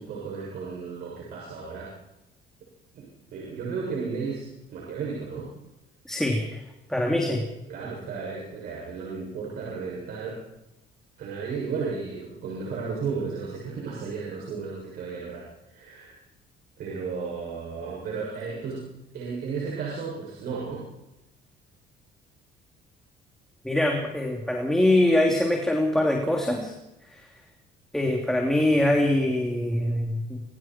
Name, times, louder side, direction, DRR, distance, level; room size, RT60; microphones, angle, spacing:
voice 1, 0.0-1.9 2.9-5.5 7.7-10.4 11.2-16.2 16.8-18.9 19.1-20.8, right 5 dB, 70° right, -3 dB, 7.3 m, -34 dB
voice 2, 6.0-6.6 6.9-7.5 23.6-26.7 27.1-27.3 27.9-30.4, left 1 dB, 5° left, 0 dB, 3.2 m, -23 dB
26.0 x 23.0 x 4.7 m, 0.95 s
cardioid pair, 110°, 17 cm